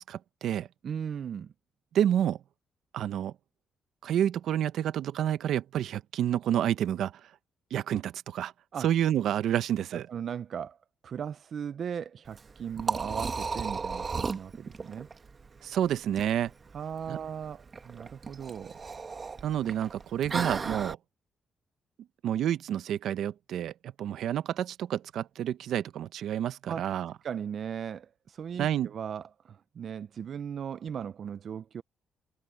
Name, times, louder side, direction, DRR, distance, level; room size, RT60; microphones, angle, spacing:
voice 1, 0.0-0.7 1.9-2.4 2.9-3.3 4.0-7.3 7.7-8.5 8.8-10.0 15.6-16.5 17.1-17.2 19.4-21.0 22.2-27.1 28.6-28.9, right 10 dB, 75° right, 0.9 m, -29 dB
voice 2, 0.8-1.5 8.7-8.9 9.9-10.8 11.0-15.1 16.7-18.8 26.7-26.8 27.2-31.8, right 8 dB, 55° right, 0.5 m, -37 dB
Liquid, 12.3-20.9, right 4 dB, 35° right, 1.5 m, -36 dB
cardioid pair, 90°, 0 cm